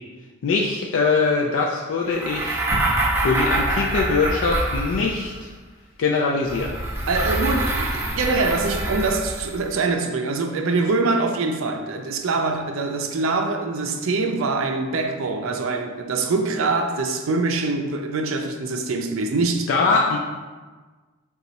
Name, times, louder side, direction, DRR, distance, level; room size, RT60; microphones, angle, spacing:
voice 1, 0.4-2.6 3.2-5.5 6.0-6.8 19.7-20.2, left 4 dB, 70° left, 0.4 m, -22 dB
sound 1, 2.1-5.4 6.4-9.6, right 2 dB, 10° right, 0.4 m, -25 dB
sound 2, 2.7-4.7, equal, 40° left, 0.9 m, -32 dB
voice 2, 7.1-19.7, right 3 dB, 80° right, 0.4 m, -24 dB
3.8 x 2.3 x 4.1 m
head